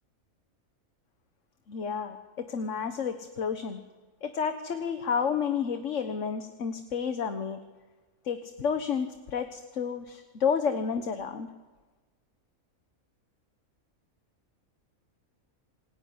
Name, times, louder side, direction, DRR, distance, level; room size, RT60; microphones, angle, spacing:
voice 1, 1.7-3.8 4.2-7.6 8.2-11.5, left 6 dB, 60° left, 8 dB, 1.6 m, -31 dB
27.5 x 20.5 x 9.7 m, 1.3 s
omnidirectional pair, 1.5 m